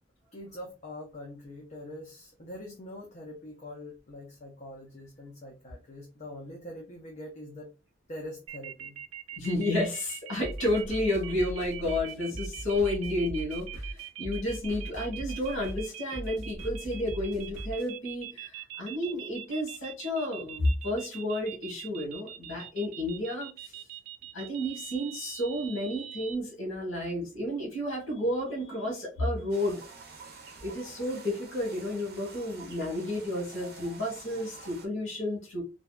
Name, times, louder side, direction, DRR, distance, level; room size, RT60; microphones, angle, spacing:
voice 1, 0.3-7.7 8.1-9.0, left 1 dB, 35° left, -2 dB, 0.6 m, -43 dB
sound 1, 8.5-26.3, right 11 dB, 90° right, 0.3 m, -43 dB
voice 2, 9.4-23.8 24.3-29.8 30.6-35.6, left 1 dB, 85° left, -2 dB, 1.1 m, -31 dB
sound 2, 10.4-17.9, right 1 dB, 65° left, 1.1 m, -40 dB
sound 3, 29.5-34.9, right 3 dB, 55° right, 0.6 m, -48 dB
2.6 x 2.2 x 2.2 m, 0.31 s
head